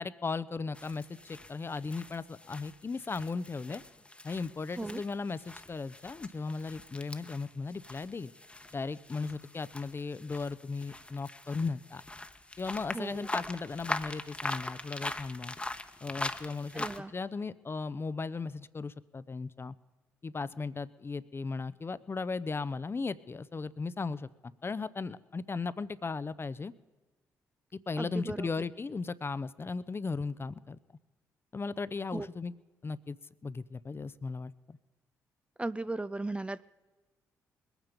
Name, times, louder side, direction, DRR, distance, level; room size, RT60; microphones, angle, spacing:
voice 1, 0.0-3.8 4.2-8.3 8.7-12.0 12.6-15.6 16.0-19.7 20.2-26.7 27.7-30.8 31.5-32.5 32.8-33.2 33.4-34.8, left 4 dB, 30° left, 16 dB, 0.6 m, -36 dB
sound 1, 0.7-17.0, left 2 dB, 15° left, 1.0 m, -42 dB
voice 2, 12.9-13.3 16.7-17.1 28.0-28.5 32.1-32.3 35.6-36.7, right 2 dB, 15° right, 15 dB, 0.4 m, -36 dB
21.0 x 9.1 x 5.2 m, 1.3 s
hypercardioid pair, 45°, 7 cm